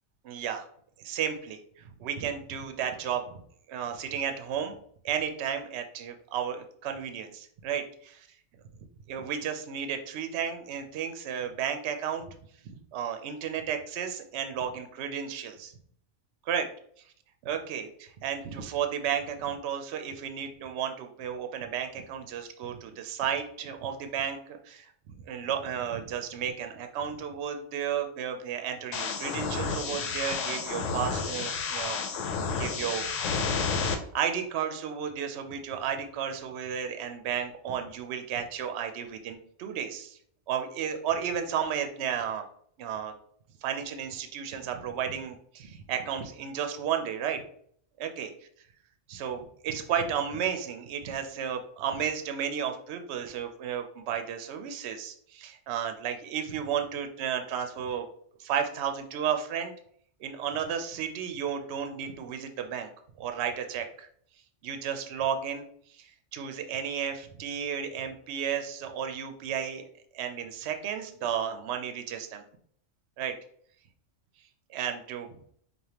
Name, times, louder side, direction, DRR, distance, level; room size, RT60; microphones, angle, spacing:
voice 1, 0.2-0.7 1.0-3.4 3.7-4.8 5.0-8.2 9.1-12.3 12.6-15.7 16.5-16.7 17.4-24.9 25.2-32.0 32.6-33.0 34.1-40.2 40.5-42.4 42.8-43.1 43.6-47.4 48.0-48.3 49.1-58.1 58.4-59.7 60.2-62.9 63.2-64.1 64.6-65.6 65.9-69.8 70.1-72.4 73.2-73.3 74.7-75.3, right 8 dB, 70° right, 6 dB, 0.8 m, -33 dB
sound 1, 28.9-33.9, left 5 dB, 85° left, 1.0 m, -31 dB
4.9 x 2.4 x 2.9 m, 0.62 s
omnidirectional pair, 1.3 m